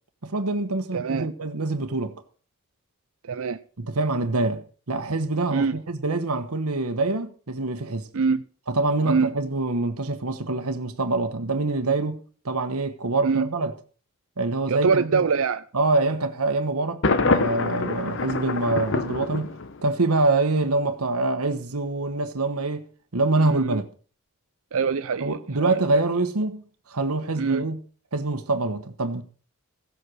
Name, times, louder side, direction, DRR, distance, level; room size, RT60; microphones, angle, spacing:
voice 1, 0.2-2.1 3.8-8.1 8.7-13.7 14.4-15.2 15.7-19.5 19.8-22.9 23.1-23.8 25.2-26.6 26.9-27.8 28.1-29.2, right 2 dB, 90° right, 1.2 m, -25 dB
voice 2, 0.9-1.3 3.3-3.6 5.5-5.8 8.1-8.4 9.1-9.3 13.2-13.5 14.7-15.6 23.4-23.8 24.7-26.0 27.4-27.6, right 5 dB, 70° right, 0.5 m, -24 dB
Thunder, 17.0-20.0, left 3 dB, 60° left, 1.0 m, -25 dB
15.5 x 8.0 x 6.3 m
head